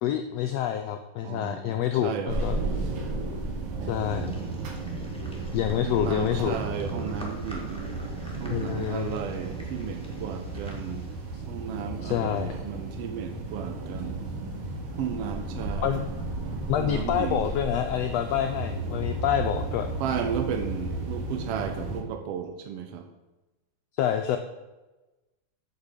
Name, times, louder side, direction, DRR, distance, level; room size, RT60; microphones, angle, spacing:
voice 1, 0.0-2.6 3.9-4.3 5.5-6.6 8.5-9.2 11.3-11.4 12.0-12.5 15.8-16.0 16.7-19.9 24.0-24.4, left 10 dB, 90° left, 5 dB, 1.4 m, -27 dB
voice 2, 1.2-2.4 3.8-4.7 5.8-7.8 8.4-11.1 11.5-14.2 15.0-16.0 16.7-17.5 20.0-23.1, right 8 dB, 80° right, 6 dB, 1.4 m, -34 dB
sound 1, 2.3-22.0, right 2 dB, 50° right, 1.9 m, -34 dB
sound 2, 4.1-11.4, left 1 dB, 5° left, 0.6 m, -49 dB
8.2 x 6.0 x 6.6 m, 1.1 s
omnidirectional pair, 3.6 m